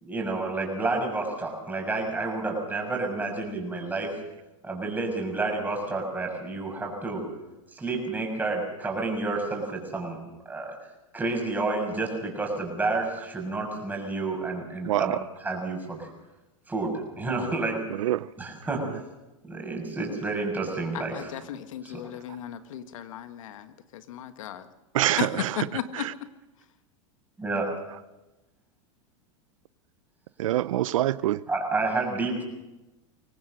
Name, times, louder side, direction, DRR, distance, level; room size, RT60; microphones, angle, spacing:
voice 1, 0.0-4.1 4.6-7.3 7.7-10.2 10.4-10.7 11.1-15.2 15.4-16.1 16.7-17.8 18.4-18.8 19.4-21.3 21.8-22.0 27.4-27.7 31.5-32.4, right 3 dB, 10° right, 6.8 m, -30 dB
voice 2, 14.8-15.2 17.9-18.3 18.8-19.0 24.9-25.7 25.9-26.1 30.4-31.4, right 14 dB, 80° right, 0.6 m, -26 dB
voice 3, 20.9-24.7 25.2-25.3 25.6-26.0, left 11 dB, 80° left, 1.6 m, -36 dB
23.0 x 18.0 x 6.6 m
hypercardioid pair, 120°, 17 cm